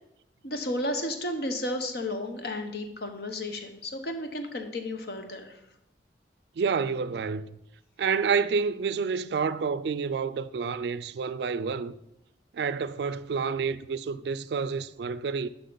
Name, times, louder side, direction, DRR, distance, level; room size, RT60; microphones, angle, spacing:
voice 1, 0.4-5.6, left 1 dB, 60° left, 0.9 m, -33 dB
voice 2, 6.6-7.6 8.0-11.9 12.5-15.5, right 5 dB, 65° right, 0.3 m, -29 dB
10.0 x 5.8 x 3.9 m
head